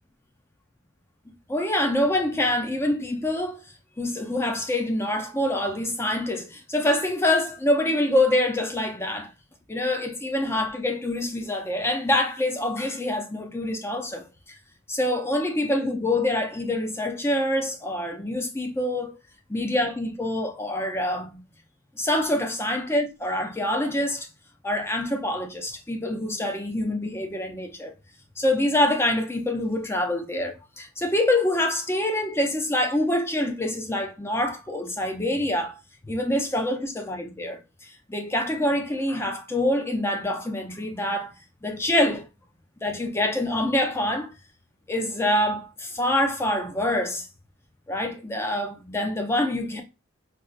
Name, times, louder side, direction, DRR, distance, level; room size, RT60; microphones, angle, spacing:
voice 1, 1.5-3.6 4.0-9.3 9.7-14.2 14.9-19.1 19.5-21.4 22.0-24.3 24.6-27.9 28.4-35.7 36.1-37.6 38.1-41.3 41.6-42.2 42.8-44.3 44.9-47.3 47.9-49.8, left 1 dB, 10° left, 0.5 m, -25 dB
4.1 x 2.4 x 2.4 m
head